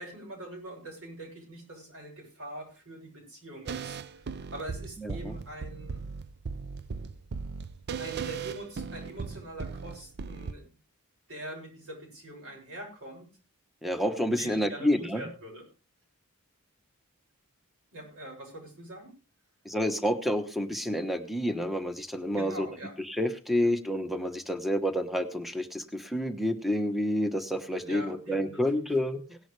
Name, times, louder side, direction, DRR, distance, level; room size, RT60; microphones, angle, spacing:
voice 1, 0.0-6.0 7.9-10.7 11.3-13.3 14.4-15.6 17.9-19.1 22.3-22.9 27.8-28.9, right 1 dB, 65° right, 0 dB, 7.4 m, -43 dB
sound 1, 3.7-10.5, right 5 dB, 50° right, 0.6 m, -38 dB
voice 2, 5.0-5.3 13.8-15.2 19.6-22.7 23.1-29.4, equal, ahead, 8 dB, 1.1 m, -29 dB
18.0 x 11.0 x 3.3 m, 0.34 s
head